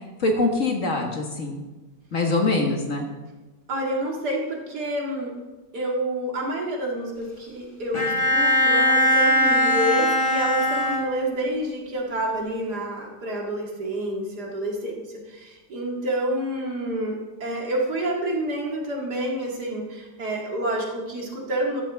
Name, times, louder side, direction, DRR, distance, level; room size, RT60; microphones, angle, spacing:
voice 1, 0.2-1.6 2.1-3.1, left 2 dB, 50° left, 1 dB, 1.9 m, -23 dB
voice 2, 3.7-5.4 5.7-21.8, right 1 dB, 70° right, -1 dB, 2.7 m, -28 dB
Bowed string instrument, 7.9-11.6, equal, 20° left, 1.8 m, -21 dB
13.5 x 11.5 x 3.5 m, 1.2 s
omnidirectional pair, 1.8 m